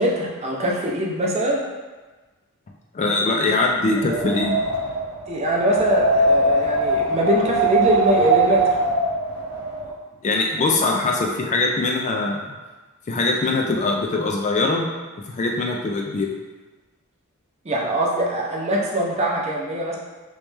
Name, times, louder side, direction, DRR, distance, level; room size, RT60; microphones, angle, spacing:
voice 1, 0.0-1.6 5.3-8.6 17.7-20.0, right 1 dB, 30° right, -2 dB, 0.5 m, -22 dB
voice 2, 2.9-4.6 10.2-12.5 13.1-14.9 15.3-16.3, left 3 dB, 30° left, 0 dB, 0.3 m, -22 dB
Wind, 3.9-9.9, right 2 dB, 90° right, 0.8 m, -22 dB
3.2 x 3.1 x 3.2 m, 1.3 s
head